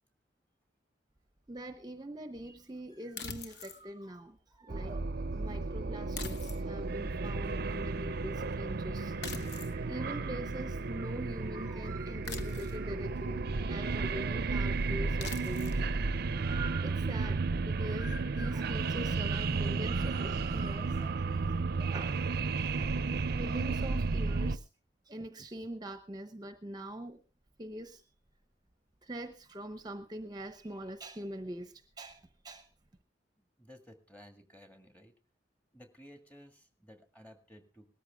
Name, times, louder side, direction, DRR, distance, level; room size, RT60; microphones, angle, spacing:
voice 1, 1.5-16.0 16.3-22.2 23.3-24.6 25.1-27.2 27.6-28.0 29.0-32.7, right 1 dB, 25° right, 0.9 m, -43 dB
sound 1, 3.2-3.8 6.2-6.9 9.2-9.8 12.2-12.9 15.2-15.8, left 5 dB, 65° left, 1.2 m, -42 dB
sound 2, 4.7-24.6, right 3 dB, 60° right, 0.6 m, -33 dB
voice 2, 33.4-35.1 35.7-37.9, equal, 10° left, 1.9 m, -55 dB
18.5 x 13.5 x 3.5 m
head